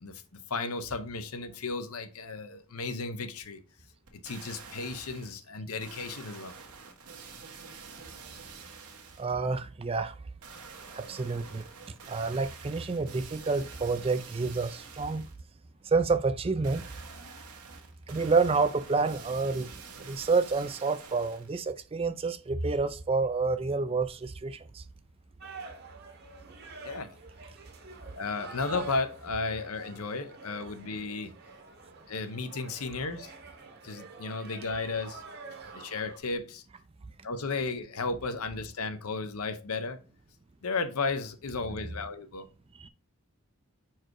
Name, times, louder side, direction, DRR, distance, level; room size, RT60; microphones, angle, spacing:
voice 1, 0.5-3.6 4.2-6.5 26.8-27.1 28.2-31.3 32.1-33.3 33.8-35.2 35.7-36.6 37.2-40.0 40.6-42.5, left 3 dB, 75° left, 0.8 m, -34 dB
sound 1, 4.1-5.4 5.8-9.4 10.4-15.4 16.6-21.6 22.1-22.2, right 5 dB, 80° right, 1.3 m, -47 dB
voice 2, 9.2-10.2 10.9-11.6 12.1-15.3 15.9-16.8 18.1-19.7 20.0-24.8 42.8-42.9, right 4 dB, 25° right, 0.3 m, -28 dB
sound 2, 25.4-36.2, right 4 dB, 45° right, 1.0 m, -47 dB
4.9 x 4.6 x 4.6 m
head